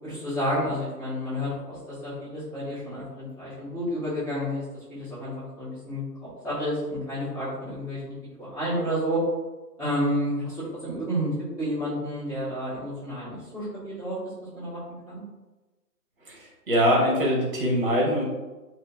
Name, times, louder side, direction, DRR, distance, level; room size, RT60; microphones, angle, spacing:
voice 1, 0.0-9.2 9.8-14.2 14.5-15.2, equal, 20° left, -13 dB, 1.4 m, -30 dB
voice 2, 16.3-18.2, equal, 35° right, -3 dB, 0.8 m, -23 dB
3.9 x 2.0 x 2.2 m, 1.2 s
hypercardioid pair, 165°, 49 cm